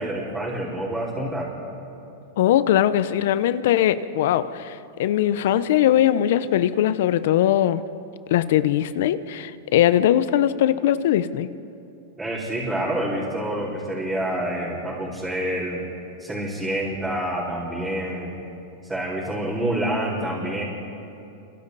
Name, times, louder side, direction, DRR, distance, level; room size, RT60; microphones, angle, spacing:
voice 1, 0.0-1.5 12.2-15.8 16.2-18.3 18.8-20.6, right 1 dB, 10° right, -9 dB, 5.2 m, -27 dB
voice 2, 2.4-7.8 8.3-11.5, left 11 dB, 70° left, 14 dB, 0.8 m, -20 dB
29.0 x 26.0 x 4.2 m, 2.7 s
supercardioid pair, 130°, 0 cm